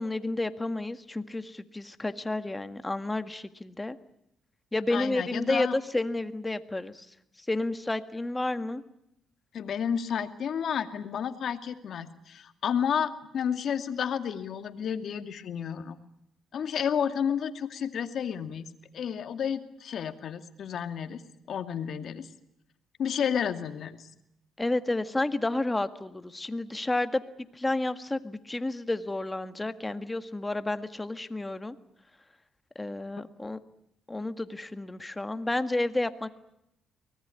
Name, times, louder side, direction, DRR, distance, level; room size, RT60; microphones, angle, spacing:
voice 1, 0.0-4.0 4.7-7.1 7.5-8.8 24.6-27.2 27.5-31.8 32.8-33.6 34.1-36.3, left 2 dB, 15° left, 10 dB, 1.8 m, -31 dB
voice 2, 4.9-5.8 9.5-16.0 16.5-18.7 18.9-21.2 21.5-22.3 23.0-24.1, left 8 dB, 60° left, 8 dB, 2.4 m, -31 dB
24.0 x 19.0 x 9.9 m, 0.81 s
cardioid pair, 90°, 0 cm